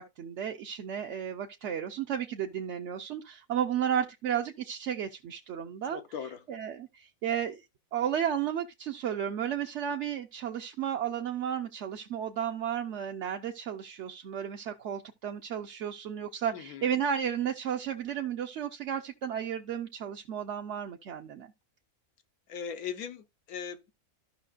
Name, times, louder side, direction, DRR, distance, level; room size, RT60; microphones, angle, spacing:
voice 1, 0.0-6.0 6.5-7.6 7.9-21.5, right 9 dB, 60° right, 0.9 m, -33 dB
voice 2, 5.8-6.5 16.5-16.9 22.5-23.9, left 7 dB, 80° left, 1.4 m, -39 dB
13.5 x 5.7 x 2.4 m
omnidirectional pair, 1.5 m